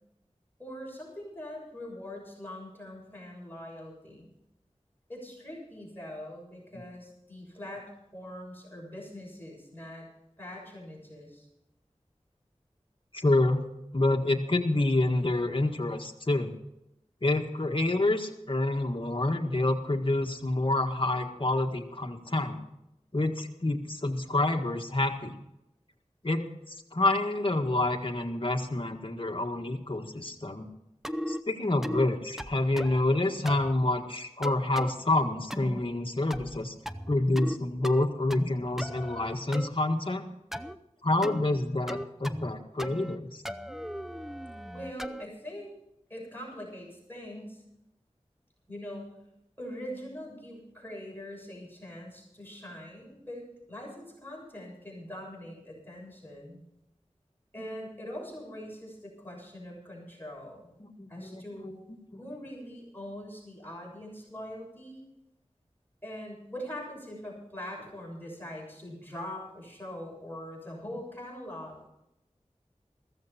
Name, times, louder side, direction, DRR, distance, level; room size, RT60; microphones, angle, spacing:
voice 1, 0.6-4.3 5.1-10.1 10.4-11.5 44.7-45.7 46.1-47.6 48.7-49.2 49.6-56.6 57.5-60.7 61.1-61.8 62.2-65.1 66.0-71.8, left 1 dB, 15° left, -3 dB, 6.9 m, -42 dB
voice 2, 13.1-13.7 13.9-16.5 17.2-22.6 23.1-25.3 26.2-30.7 31.3-36.7 37.1-40.2 41.0-43.4 57.6-57.7 60.8-61.7 62.1-62.2, left 2 dB, 45° left, 3 dB, 1.7 m, -28 dB
sound 1, 31.0-31.4 31.8-32.1 32.4-33.0 33.5-33.7 34.4-34.9 35.5-35.8 36.3-36.6 36.9-37.6 37.8-38.5 38.8-39.7 40.5-40.8 41.2-41.4 41.9-42.5 42.8-43.2 43.5-45.3, equal, 5° right, 0.7 m, -36 dB
15.0 x 14.5 x 4.4 m, 0.87 s
wide cardioid pair, 50°, 12 cm